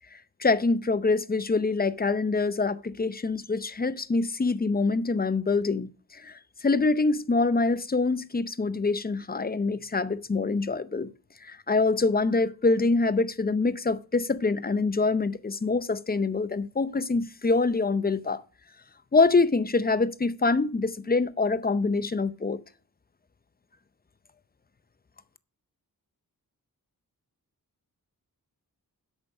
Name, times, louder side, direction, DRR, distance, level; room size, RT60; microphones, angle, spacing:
voice 1, 0.4-5.9 6.2-6.3 6.6-11.1 11.4-18.4 19.1-22.6, left 3 dB, 25° left, 0.6 m, -25 dB
8.4 x 6.4 x 6.3 m
wide cardioid pair, 115°, 37 cm